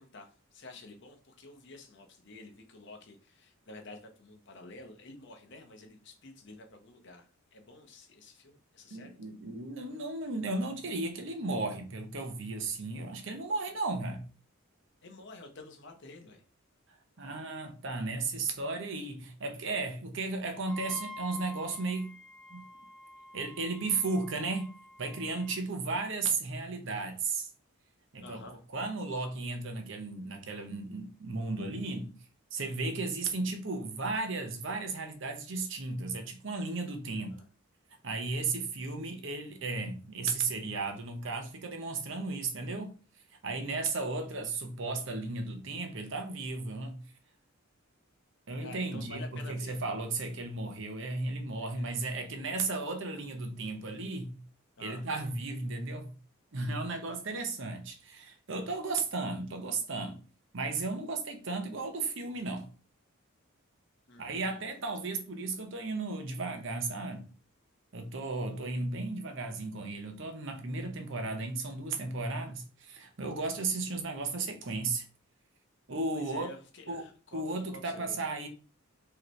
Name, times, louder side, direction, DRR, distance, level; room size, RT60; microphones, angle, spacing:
voice 1, 0.0-9.2 15.0-16.4 28.2-28.6 37.3-37.5 48.6-49.8 51.6-51.9 54.8-55.0 64.1-64.8 76.1-77.4 77.7-78.2, left 2 dB, 55° left, 0.9 m, -50 dB
voice 2, 8.9-14.2 17.2-22.2 22.5-22.6 23.3-24.7 25.0-27.5 28.1-28.5 28.7-32.2 32.5-37.4 38.0-42.9 43.4-47.0 48.5-54.4 54.8-56.2 56.5-60.2 60.5-62.7 64.2-67.3 67.9-75.1 75.9-76.5 76.9-77.0 77.3-78.5, right 3 dB, 60° right, 0.8 m, -35 dB
Wind instrument woodwind instrument, 20.6-25.6, left 1 dB, 5° left, 1.0 m, -48 dB
4.9 x 3.1 x 3.2 m
head